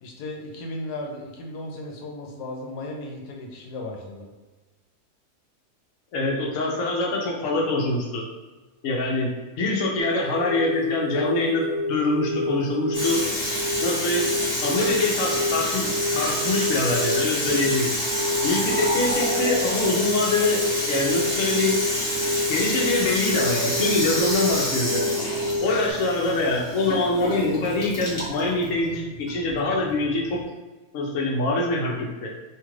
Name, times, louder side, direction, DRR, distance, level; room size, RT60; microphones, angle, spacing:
voice 1, 0.0-4.3, left 2 dB, 90° left, 0 dB, 1.2 m, -35 dB
voice 2, 6.1-8.2 8.8-9.3 9.6-13.2 13.8-14.3 14.6-17.9 18.4-20.6 20.9-21.8 22.5-25.1 25.6-30.4 30.9-32.3, left 2 dB, 60° left, -2 dB, 1.0 m, -24 dB
sound 1, 10.0-25.9, left 2 dB, 65° right, 0.7 m, -29 dB
Water tap faucet / Sink (filling or washing), 12.9-30.4, left 1 dB, 40° left, 1.1 m, -29 dB
sound 2, 17.6-21.2, right 2 dB, 40° right, 1.3 m, -34 dB
2.8 x 2.4 x 3.1 m, 1.2 s
omnidirectional pair, 1.7 m